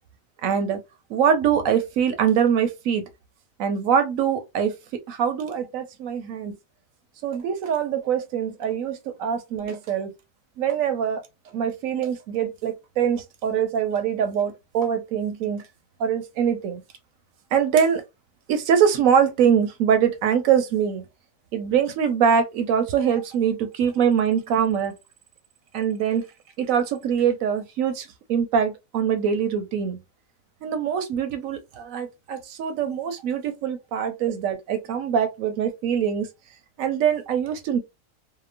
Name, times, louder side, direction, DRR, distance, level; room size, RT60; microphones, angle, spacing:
voice 1, 0.4-0.8 1.1-3.0 3.6-4.7 5.1-6.6 7.2-10.1 10.6-11.2 11.5-15.6 16.0-16.8 17.5-18.0 18.5-21.0 21.5-24.9 25.7-26.2 26.6-30.0 30.6-36.3 36.8-37.8, right 8 dB, 70° right, 0.9 m, -23 dB
2.9 x 2.1 x 2.4 m
omnidirectional pair, 1.6 m